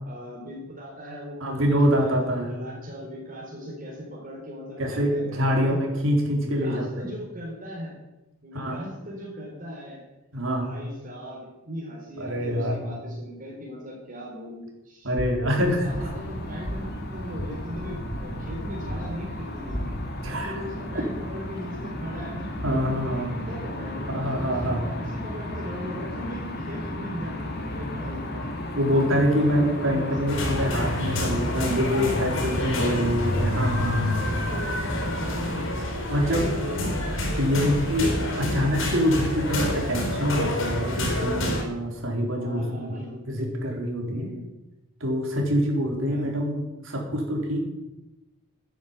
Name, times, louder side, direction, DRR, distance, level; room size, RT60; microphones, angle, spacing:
voice 1, 0.0-5.8 6.3-7.9 8.4-10.0 10.5-15.1 15.4-19.9 20.3-22.4 22.7-28.2 28.9-30.6 33.3-33.6 34.2-35.7 36.5-37.2 42.4-43.2 44.1-44.5 46.1-46.3, equal, 40° right, -4 dB, 4.1 m, -38 dB
voice 2, 1.4-2.5 4.8-7.1 8.5-8.8 10.3-10.7 12.2-12.8 15.0-15.9 20.2-20.6 22.6-23.3 24.1-24.8 26.3-26.4 28.3-28.5 28.7-34.3 36.1-36.9 37.2-44.3 45.0-47.6, equal, 70° right, 0 dB, 4.2 m, -25 dB
sound 1, 15.1-20.4, equal, 20° left, 3.7 m, -37 dB
sound 2, 15.9-35.7, left 1 dB, 50° left, 2.7 m, -34 dB
sound 3, 30.3-41.6, left 1 dB, 65° left, 4.3 m, -28 dB
13.5 x 10.0 x 8.3 m, 1.0 s
head